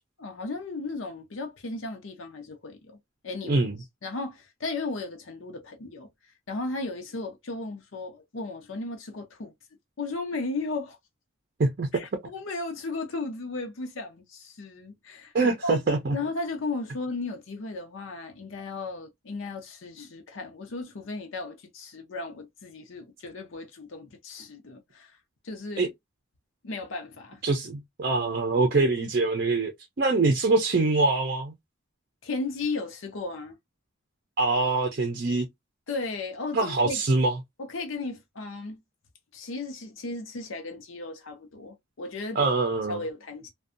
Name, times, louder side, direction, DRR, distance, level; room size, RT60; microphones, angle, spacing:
voice 1, 0.2-3.0 3.2-3.6 4.0-6.1 6.5-9.5 10.0-11.0 11.9-15.8 16.1-25.1 25.4-25.9 26.6-27.4 32.2-33.6 35.9-37.0 37.6-38.8 39.3-42.5 42.9-43.5, left 3 dB, 80° left, 0.6 m, -35 dB
voice 2, 3.4-3.7 11.6-11.9 15.3-16.2 25.8-25.9 27.4-29.7 30.0-31.5 34.4-35.5 36.5-37.3 42.4-43.0, right 3 dB, 50° right, 0.5 m, -24 dB
2.6 x 2.2 x 2.5 m
head